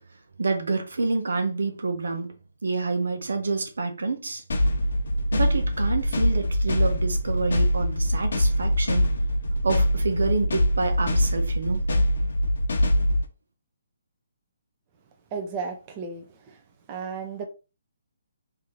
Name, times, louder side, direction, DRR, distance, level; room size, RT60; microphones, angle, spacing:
voice 1, 0.4-2.3 2.6-4.4 5.3-9.1 9.6-11.8, right 3 dB, 85° right, 1.0 m, -28 dB
sound 1, 4.5-13.3, equal, 75° left, 1.0 m, -23 dB
voice 2, 15.3-16.6 16.9-17.5, right 5 dB, 25° right, 0.7 m, -34 dB
3.4 x 2.8 x 3.8 m
hypercardioid pair, 165°, 0 cm